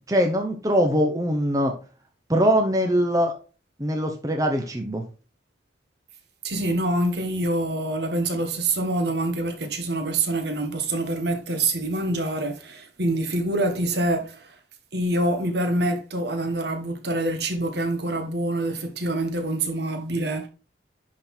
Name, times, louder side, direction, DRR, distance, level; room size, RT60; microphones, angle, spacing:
voice 1, 0.1-1.7 2.3-3.3 3.8-5.0, equal, 20° right, 0.9 m, -22 dB
voice 2, 6.4-14.5 14.9-20.5, right 2 dB, 60° right, 1.6 m, -26 dB
10.5 x 4.0 x 4.4 m
head